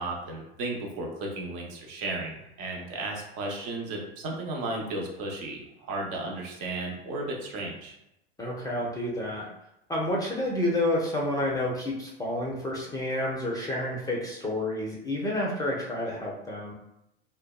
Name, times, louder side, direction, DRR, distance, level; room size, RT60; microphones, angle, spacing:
voice 1, 0.0-7.9, right 2 dB, 55° right, 0 dB, 0.8 m, -34 dB
voice 2, 8.4-9.5 9.9-16.7, left 1 dB, 10° left, -3 dB, 0.5 m, -29 dB
2.7 x 2.2 x 2.2 m, 0.83 s
hypercardioid pair, 90°, 31 cm